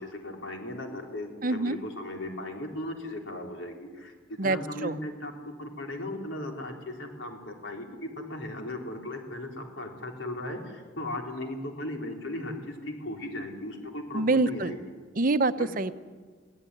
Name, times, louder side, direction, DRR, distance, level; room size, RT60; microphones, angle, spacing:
voice 1, 0.0-5.3 5.6-14.8 15.6-15.7, left 1 dB, 85° left, 2 dB, 4.1 m, -37 dB
voice 2, 1.4-1.8 4.4-5.0 14.1-14.7 15.1-15.9, right 2 dB, 45° right, 12 dB, 0.8 m, -26 dB
22.5 x 16.5 x 9.9 m, 1.5 s
head